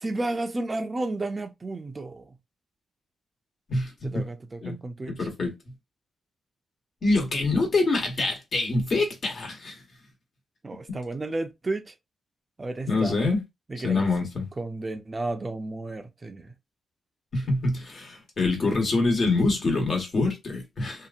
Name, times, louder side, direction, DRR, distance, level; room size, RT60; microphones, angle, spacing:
voice 1, 0.0-2.3 4.0-5.3 10.6-11.9 12.6-13.2 13.7-14.0 14.6-16.5, right 2 dB, 30° right, 0.5 m, -32 dB
voice 2, 3.7-4.3 4.6-4.8 5.1-5.5 7.0-9.8 10.9-11.0 12.9-13.4 13.8-14.5 17.3-21.1, left 3 dB, 55° left, 1.3 m, -25 dB
2.8 x 2.5 x 2.4 m
cardioid pair, 75°, 0 cm